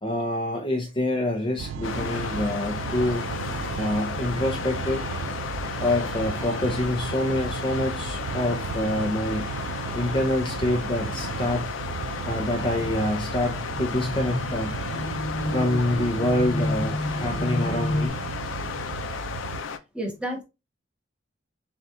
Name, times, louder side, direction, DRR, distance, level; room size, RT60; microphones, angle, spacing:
voice 1, 0.0-3.2 3.8-5.1 5.8-9.5 9.9-11.7 12.2-14.7 15.5-18.2, left 1 dB, 25° left, 0.7 m, -26 dB
sound 1, 1.6-19.6, right 6 dB, 80° right, 0.3 m, -35 dB
sound 2, 1.8-19.8, left 6 dB, 80° left, 0.5 m, -34 dB
sound 3, 13.1-18.1, left 1 dB, 65° left, 1.3 m, -31 dB
voice 2, 19.9-20.4, right 1 dB, 5° right, 1.2 m, -34 dB
6.9 x 2.4 x 2.6 m
head